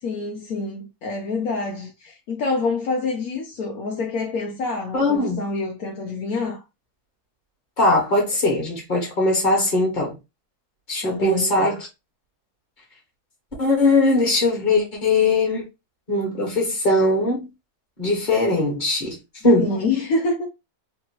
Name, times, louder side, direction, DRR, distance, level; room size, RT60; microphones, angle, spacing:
voice 1, 0.0-6.6 11.0-11.8 19.6-20.5, left 3 dB, 70° left, 1.2 m, -27 dB
voice 2, 4.9-5.4 7.8-10.1 10.9-11.9 13.6-15.7 16.1-17.5 18.0-19.2 19.4-19.7, left 2 dB, 30° left, 1.6 m, -20 dB
3.5 x 2.9 x 2.9 m
omnidirectional pair, 1.7 m